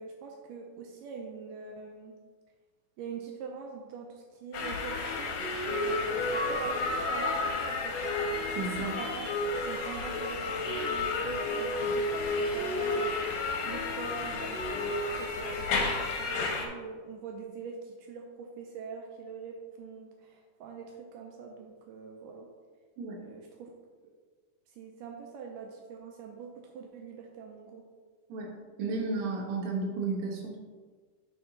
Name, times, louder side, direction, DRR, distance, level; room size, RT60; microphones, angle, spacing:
voice 1, 0.0-2.2 3.0-5.3 5.7-8.0 8.9-22.5 23.2-23.7 24.7-27.8, right 5 dB, 80° right, 1 dB, 2.1 m, -44 dB
sound 1, 4.5-16.7, left 3 dB, 75° left, 1.6 m, -31 dB
voice 2, 8.6-9.0 23.0-23.2 28.3-28.5 28.8-30.6, right 3 dB, 60° right, -3 dB, 1.6 m, -33 dB
9.9 x 3.5 x 3.8 m, 1.5 s
omnidirectional pair, 4.1 m